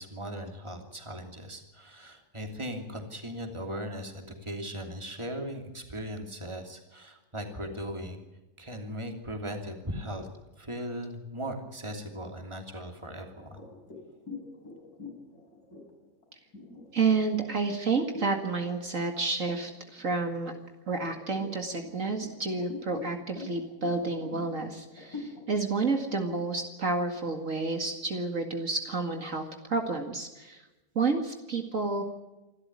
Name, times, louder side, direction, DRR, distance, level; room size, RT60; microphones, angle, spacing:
voice 1, 0.0-8.2 8.6-10.3 10.6-13.6, equal, 20° right, 4 dB, 3.0 m, -38 dB
sound 1, 13.4-18.5 18.9-19.2 19.6-20.4 21.0-27.7, left 3 dB, 85° left, 5.8 m, -45 dB
voice 2, 16.9-20.5 20.9-30.6 31.0-32.0, right 4 dB, 60° right, 4 dB, 2.4 m, -30 dB
27.0 x 13.0 x 9.6 m, 1.1 s
omnidirectional pair, 1.6 m